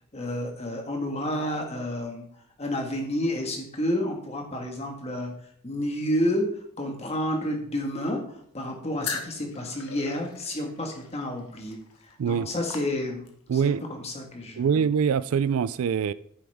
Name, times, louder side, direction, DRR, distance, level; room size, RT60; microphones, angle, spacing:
voice 1, 0.1-2.2 2.6-5.3 5.6-6.5 6.8-14.7, left 1 dB, 30° left, 1.6 m, -30 dB
sound 1, 9.0-13.5, left 5 dB, 85° left, 1.3 m, -40 dB
voice 2, 13.5-13.8 14.6-16.1, right 7 dB, 70° right, 0.3 m, -24 dB
9.7 x 7.0 x 3.5 m
head